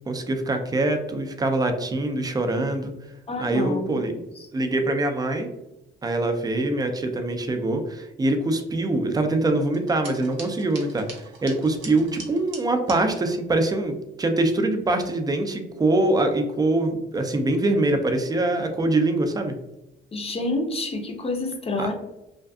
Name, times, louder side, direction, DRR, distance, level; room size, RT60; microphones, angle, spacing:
voice 1, 0.1-2.9 3.4-4.1 4.5-5.5 6.0-19.5 21.8-21.9, right 2 dB, 20° right, 5 dB, 0.4 m, -24 dB
voice 2, 3.3-4.2 20.1-21.9, left 2 dB, 30° left, 3 dB, 0.5 m, -28 dB
sound 1, 9.7-13.0, right 4 dB, 75° right, 0.7 m, -42 dB
2.6 x 2.3 x 2.2 m, 0.91 s
cardioid pair, 90°, 20 cm